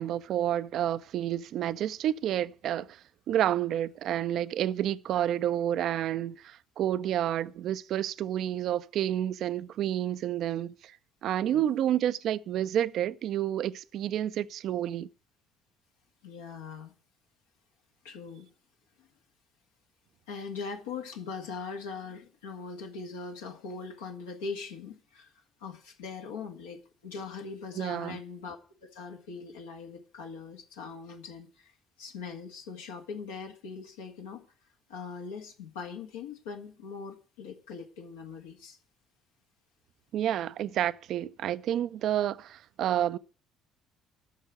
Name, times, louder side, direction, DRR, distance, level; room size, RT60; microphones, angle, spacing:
voice 1, 0.0-3.0 3.3-11.0 11.2-15.1 27.8-28.2 40.1-43.2, right 11 dB, 55° right, 0.5 m, -29 dB
voice 2, 16.2-16.9 18.0-18.5 19.0-19.1 20.3-25.3 25.6-31.7 32.0-34.4 34.9-38.8, left 5 dB, 75° left, 1.8 m, -41 dB
12.5 x 6.4 x 8.1 m
figure-of-eight pair, 55°, 0 cm